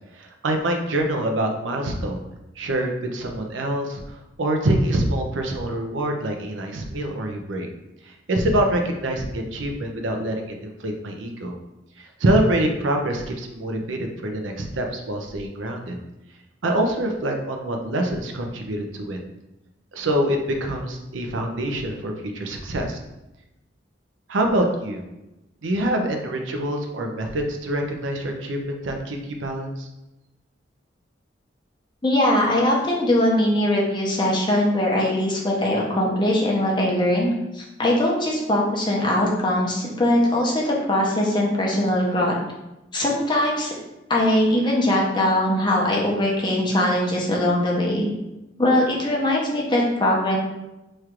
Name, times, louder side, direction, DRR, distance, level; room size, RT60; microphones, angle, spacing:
voice 1, 0.1-2.2 2.6-7.7 8.0-11.6 12.0-16.0 16.6-19.2 19.9-23.0 24.3-25.0 25.6-29.9, right 1 dB, 85° right, 3 dB, 0.6 m, -25 dB
voice 2, 32.0-42.3 42.9-43.7 44.1-48.1 48.6-50.4, left 1 dB, 25° left, -2 dB, 0.7 m, -21 dB
3.2 x 2.4 x 4.4 m, 0.95 s
head